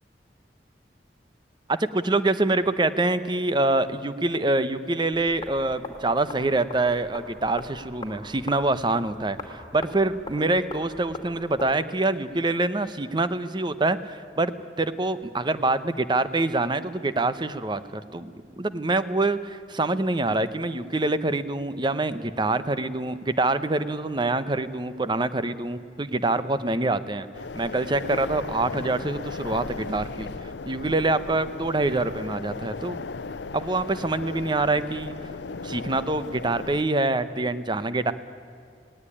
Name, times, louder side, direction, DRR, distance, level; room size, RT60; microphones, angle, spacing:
voice 1, 1.7-14.5 14.8-27.3 27.5-30.3 30.7-33.0 33.5-35.1 35.6-38.1, right 2 dB, 25° right, 13 dB, 0.8 m, -25 dB
sound 1, 5.1-11.7, left 2 dB, 25° left, 2.5 m, -41 dB
sound 2, 27.3-36.8, left 4 dB, 90° left, 0.6 m, -36 dB
18.5 x 18.0 x 9.9 m, 2.3 s
head